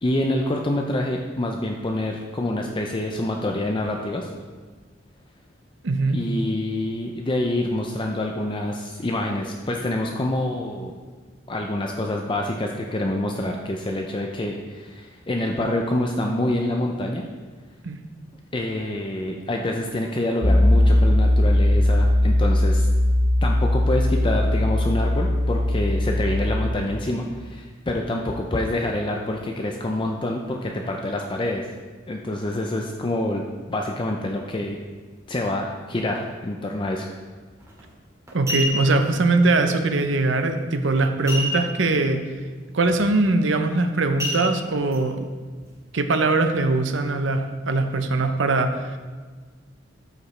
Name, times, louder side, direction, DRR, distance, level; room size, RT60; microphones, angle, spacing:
voice 1, 0.0-4.3 6.1-10.9 11.5-17.2 18.5-22.9 23.4-31.7 32.1-33.4 33.7-34.8 35.3-37.1, left 1 dB, 25° left, 1 dB, 0.5 m, -26 dB
voice 2, 5.8-6.2 17.8-18.0 38.3-42.2 42.7-45.3 45.9-49.0, right 2 dB, 70° right, 7 dB, 0.7 m, -21 dB
Piano, 20.4-26.7, left 1 dB, 55° left, 1.1 m, -19 dB
sound 1, 37.6-37.8 38.3-39.1 41.3-41.9 42.3-42.4 42.8-43.1 44.2-45.0 45.6-45.7, left 1 dB, 15° right, 2.0 m, -28 dB
13.0 x 5.1 x 3.2 m, 1.4 s
head